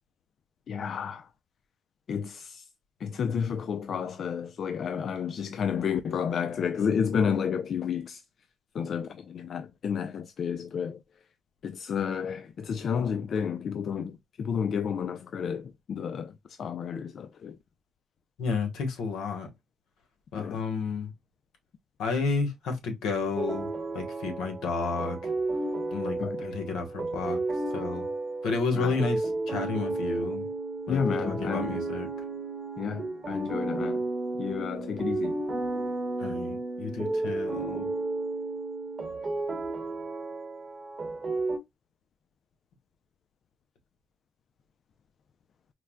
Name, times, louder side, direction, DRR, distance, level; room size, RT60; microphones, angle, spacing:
voice 1, 0.7-1.3 2.1-2.7 3.0-8.2 8.7-11.0 11.6-17.6 20.4-20.6 26.2-26.5 28.7-29.0 30.9-31.8 32.8-34.0 34.4-35.4, left 7 dB, 55° left, 0.3 m, -31 dB
voice 2, 18.4-19.5 20.3-21.1 22.0-23.7 23.9-25.2 25.9-27.4 27.7-28.1 28.4-29.2 29.5-30.4 30.9-32.1 36.2-37.9, left 4 dB, 85° left, 1.1 m, -31 dB
sound 1, 23.4-41.6, right 2 dB, 40° right, 1.0 m, -32 dB
4.5 x 2.1 x 2.2 m
cardioid pair, 90°, 0 cm